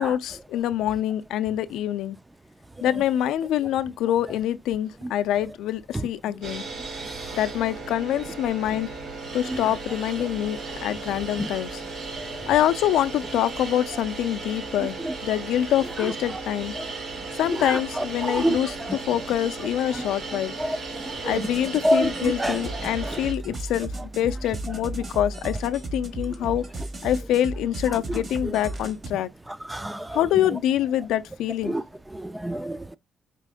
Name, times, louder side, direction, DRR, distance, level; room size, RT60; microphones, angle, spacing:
voice 1, 0.0-2.2 2.8-6.6 7.4-8.9 9.3-11.8 12.5-16.7 17.4-20.5 21.2-26.7 27.0-29.3 30.1-31.8, left 11 dB, 85° left, 0.4 m, -25 dB
sound 1, 6.4-23.3, right 3 dB, 70° right, 2.9 m, -36 dB
voice 2, 17.7-18.6 19.9-20.0 20.6-20.8 21.0-21.4 21.8-22.6 29.7-30.2 31.7-31.8 32.1-32.8, right 1 dB, 10° right, 0.4 m, -26 dB
sound 2, 21.4-29.1, right 2 dB, 45° right, 1.6 m, -35 dB
5.1 x 2.4 x 3.5 m
cardioid pair, 90°, 0 cm